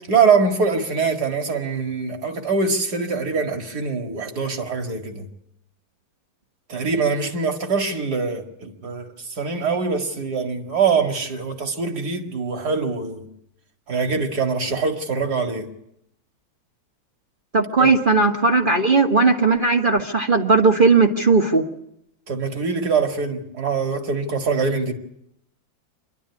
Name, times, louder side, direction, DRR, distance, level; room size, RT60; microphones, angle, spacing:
voice 1, 0.1-5.2 6.7-13.3 13.9-15.7 17.8-17.9 22.3-24.9, right 5 dB, 55° right, 2.5 m, -23 dB
voice 2, 17.5-21.6, right 3 dB, 30° right, 1.3 m, -17 dB
26.5 x 12.0 x 9.6 m
omnidirectional pair, 2.1 m